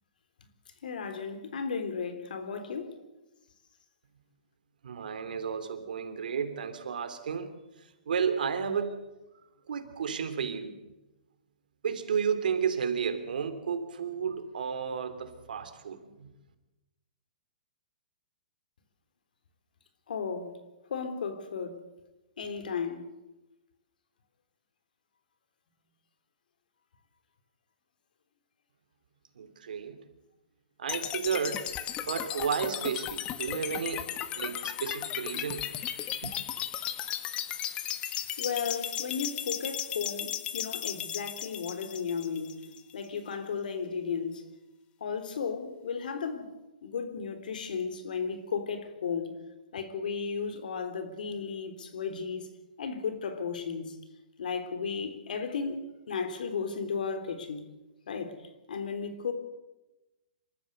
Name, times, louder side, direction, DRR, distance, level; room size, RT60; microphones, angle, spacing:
voice 1, 0.8-3.0 20.1-20.5 20.9-21.8 22.4-23.0 38.4-42.6 42.9-44.4 45.0-46.5 46.8-49.3 49.7-52.5 52.8-54.0 54.4-57.7 58.1-58.4 58.7-59.3, left 5 dB, 75° left, 3.6 m, -34 dB
voice 2, 4.8-7.5 8.0-9.1 9.7-10.8 11.8-16.3 29.3-30.0 30.8-31.7 32.1-34.1 34.4-35.7 36.2-36.3, right 7 dB, 80° right, 3.2 m, -32 dB
sound 1, 30.9-42.9, left 11 dB, 20° left, 1.2 m, -35 dB
26.0 x 14.5 x 8.1 m
hypercardioid pair, 155°, 5 cm